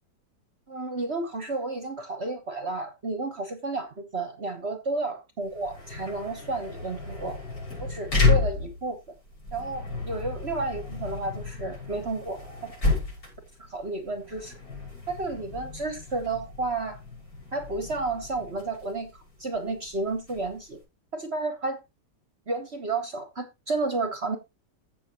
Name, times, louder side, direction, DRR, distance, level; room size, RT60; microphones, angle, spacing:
voice 1, 0.7-7.4 7.8-9.0 9.5-12.4 13.6-14.6 15.1-17.0 17.5-19.1 19.4-20.8 21.1-21.8 22.5-24.4, right 3 dB, 40° right, 1.4 m, -31 dB
sound 1, 5.4-20.8, left 3 dB, 55° left, 6.3 m, -31 dB
15.5 x 6.1 x 3.0 m
omnidirectional pair, 1.9 m